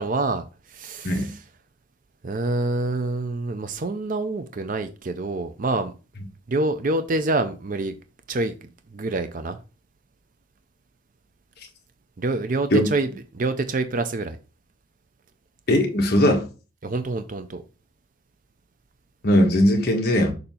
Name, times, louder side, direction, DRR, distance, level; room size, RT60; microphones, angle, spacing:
voice 1, 0.0-1.4 2.2-5.9 6.5-7.9 8.3-8.5 8.9-9.6 12.2-13.1 13.3-14.4 16.8-17.6, right 2 dB, 40° right, 0.5 m, -26 dB
voice 2, 15.7-16.4 19.2-20.3, equal, 45° left, 1.4 m, -19 dB
6.8 x 2.8 x 5.5 m
head